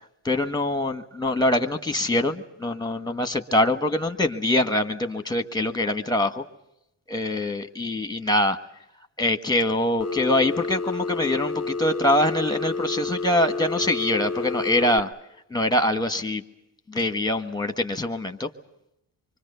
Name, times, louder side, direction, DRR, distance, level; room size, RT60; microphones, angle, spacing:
voice 1, 0.2-6.4 7.1-8.6 9.2-15.1 15.5-16.4 16.9-18.5, left 1 dB, 10° left, 9 dB, 1.4 m, -24 dB
Telephone, 10.0-15.0, left 4 dB, 35° left, 0.9 m, -29 dB
25.5 x 24.5 x 6.9 m, 0.83 s
wide cardioid pair, 135°, 45 cm